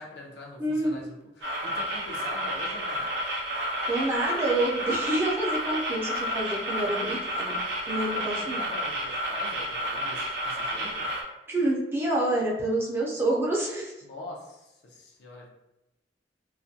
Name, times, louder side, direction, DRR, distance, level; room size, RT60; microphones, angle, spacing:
voice 1, 0.0-3.1 8.1-11.1 14.0-15.5, left 2 dB, 70° left, -2 dB, 0.6 m, -43 dB
voice 2, 0.6-1.0 3.9-7.6 7.9-8.6 11.5-13.9, right 1 dB, 15° right, -4 dB, 0.5 m, -27 dB
sound 1, 1.4-11.2, equal, 65° right, 0.5 m, -31 dB
2.3 x 2.1 x 2.6 m, 0.96 s
head